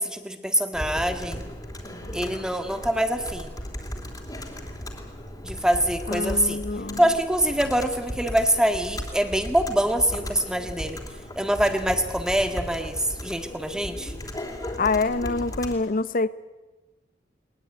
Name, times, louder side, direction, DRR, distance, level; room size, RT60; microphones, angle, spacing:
voice 1, 0.0-1.4 2.1-3.5 5.4-6.6 7.0-11.0 11.3-14.1, right 1 dB, 5° right, 1.8 m, -24 dB
Computer keyboard, 0.7-15.7, left 1 dB, 20° left, 3.2 m, -36 dB
voice 2, 6.1-7.0 14.8-16.3, left 3 dB, 50° left, 0.7 m, -25 dB
20.5 x 20.0 x 9.2 m
head